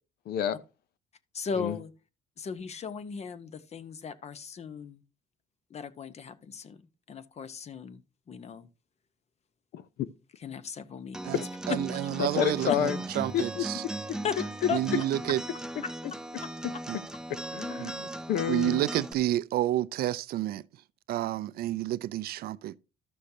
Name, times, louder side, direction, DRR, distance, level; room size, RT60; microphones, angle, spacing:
voice 1, 0.3-0.6 1.6-1.7 9.7-9.8 12.2-13.0 13.3-13.6 17.3-18.8, left 9 dB, 65° left, 0.7 m, -29 dB
voice 2, 1.3-1.9 2.4-5.0 5.7-8.7 10.4-11.2 11.7-12.1 12.7-12.8 14.2-14.8 16.4-16.5, left 6 dB, 40° left, 0.9 m, -37 dB
Acoustic guitar, 11.1-19.1, right 1 dB, 5° right, 0.4 m, -38 dB
voice 3, 11.7-13.8 14.7-15.4 16.9-17.0 17.8-17.9 18.5-20.6 21.1-22.8, right 14 dB, 65° right, 0.4 m, -30 dB
13.0 x 6.3 x 2.8 m
cardioid pair, 110°, 17 cm